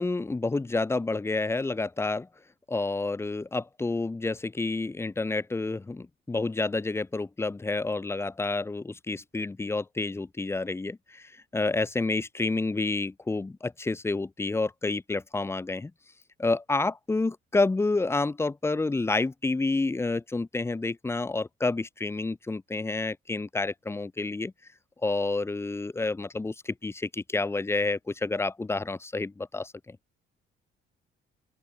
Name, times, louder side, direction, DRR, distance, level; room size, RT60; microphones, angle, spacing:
voice 1, 0.0-2.3 2.7-15.9 16.4-24.5 25.0-30.0, left 3 dB, 10° left, 0.7 m, -29 dB
open air
cardioid pair, 135°, 21 cm